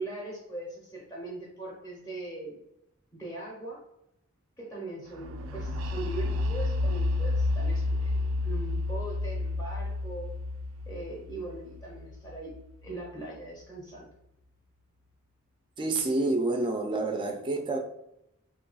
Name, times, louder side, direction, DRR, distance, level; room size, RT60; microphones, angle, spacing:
voice 1, 0.0-2.6 3.1-3.8 4.6-10.3 10.9-12.6 12.8-14.1, right 2 dB, 10° left, -3 dB, 0.7 m, -40 dB
sound 1, 5.2-12.9, left 2 dB, 90° right, 0.3 m, -30 dB
voice 2, 15.8-17.8, right 2 dB, 25° right, 3 dB, 0.4 m, -28 dB
3.0 x 2.3 x 3.9 m, 0.81 s
head